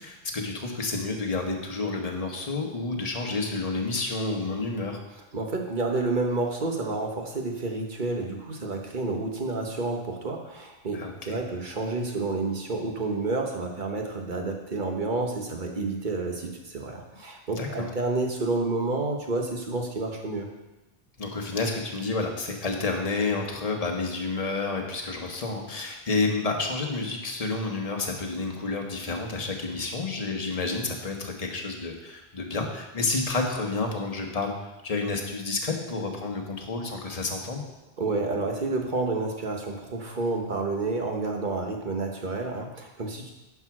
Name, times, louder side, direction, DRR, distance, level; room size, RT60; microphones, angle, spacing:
voice 1, 0.0-5.0 10.9-11.4 17.5-17.9 21.2-34.5 34.8-37.6, left 3 dB, 35° left, 2 dB, 1.3 m, -30 dB
voice 2, 5.3-20.5 38.0-43.3, right 3 dB, 45° right, 2 dB, 1.4 m, -29 dB
10.5 x 4.8 x 6.1 m, 1.0 s
omnidirectional pair, 1.2 m